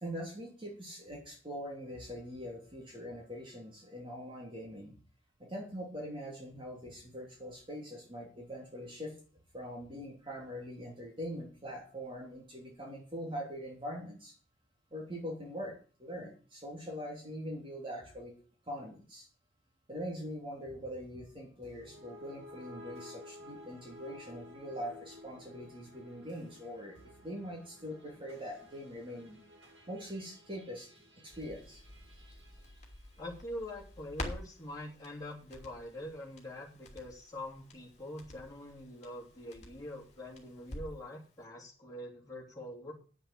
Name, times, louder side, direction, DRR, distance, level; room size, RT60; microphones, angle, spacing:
voice 1, 0.0-4.9 5.4-9.1 9.5-14.3 14.9-18.3 18.7-19.3 19.9-29.4 29.9-30.9 31.2-31.8, equal, 25° right, -2 dB, 2.9 m, -43 dB
sound 1, 21.6-33.9, left 1 dB, 80° right, 6.4 m, -54 dB
Crackle, 31.3-41.1 41.4-41.5, left 1 dB, 35° left, 2.7 m, -49 dB
voice 2, 33.2-42.9, left 1 dB, 20° left, -4 dB, 3.2 m, -44 dB
8.6 x 7.6 x 8.1 m, 0.40 s
head